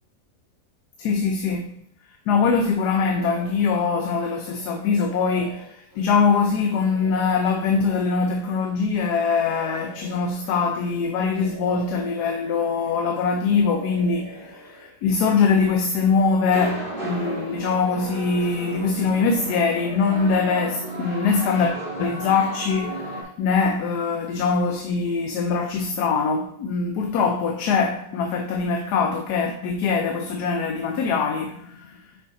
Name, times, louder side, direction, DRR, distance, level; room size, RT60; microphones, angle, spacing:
voice 1, 1.0-1.7 2.3-32.0, left 5 dB, 85° left, 1.2 m, -23 dB
sound 1, 3.0-3.9 4.3-10.9 11.2-13.2 13.5-14.9, right 2 dB, 15° left, 1.6 m, -44 dB
sound 2, 16.4-23.2, right 2 dB, 35° left, 2.4 m, -33 dB
6.7 x 4.5 x 3.8 m
omnidirectional pair, 1.7 m